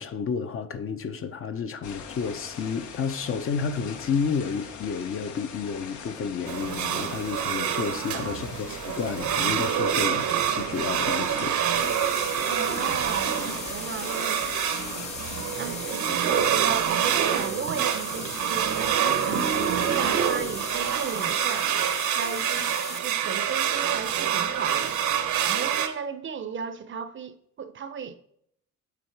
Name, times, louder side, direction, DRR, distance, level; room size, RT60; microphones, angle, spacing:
voice 1, 0.0-11.6, left 6 dB, 45° left, 0.7 m, -31 dB
sound 1, 1.8-16.0, left 6 dB, 75° left, 0.9 m, -42 dB
sound 2, 6.5-25.9, right 9 dB, 70° right, 0.8 m, -26 dB
voice 2, 7.9-8.4 12.4-14.4 15.6-18.7 19.2-21.8 22.1-28.2, right 6 dB, 40° right, 0.5 m, -35 dB
sound 3, 11.8-23.0, left 3 dB, 20° left, 0.9 m, -38 dB
8.4 x 3.8 x 4.6 m
cardioid pair, 90°, 30 cm